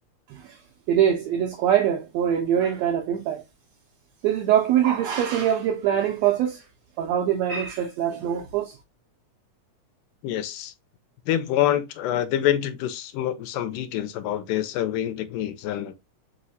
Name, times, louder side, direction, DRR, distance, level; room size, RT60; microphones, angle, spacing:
voice 1, 0.9-3.4 4.2-6.6 7.0-8.8, right 10 dB, 80° right, 1.5 m, -23 dB
voice 2, 10.2-10.7 11.3-16.0, left 12 dB, 85° left, 2.1 m, -26 dB
4.9 x 3.1 x 2.6 m
omnidirectional pair, 3.7 m